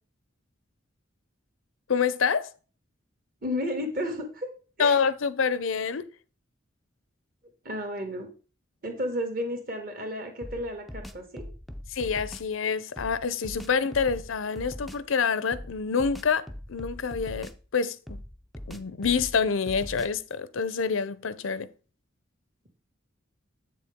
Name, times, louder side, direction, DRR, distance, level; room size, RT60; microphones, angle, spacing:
voice 1, 1.9-2.5 4.8-6.1 11.9-18.2 18.7-21.7, left 6 dB, 85° left, 0.6 m, -27 dB
voice 2, 3.4-4.5 4.8-5.0 7.6-8.3 8.8-11.4, equal, 45° right, 2.1 m, -32 dB
sound 1, 10.4-12.5 13.0-15.1 15.5-17.8 18.1-20.3, equal, ahead, 0.4 m, -41 dB
8.1 x 6.9 x 3.6 m
head